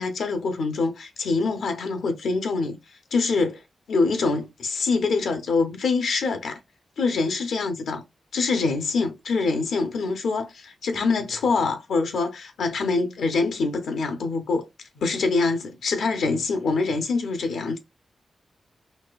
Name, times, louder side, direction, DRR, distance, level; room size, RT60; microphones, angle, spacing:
voice 1, 0.0-2.8 3.1-3.6 3.9-6.6 7.0-8.0 8.3-14.7 15.0-17.8, left 4 dB, 85° left, 0.6 m, -25 dB
4.1 x 2.3 x 2.3 m
supercardioid pair, 45°, 0 cm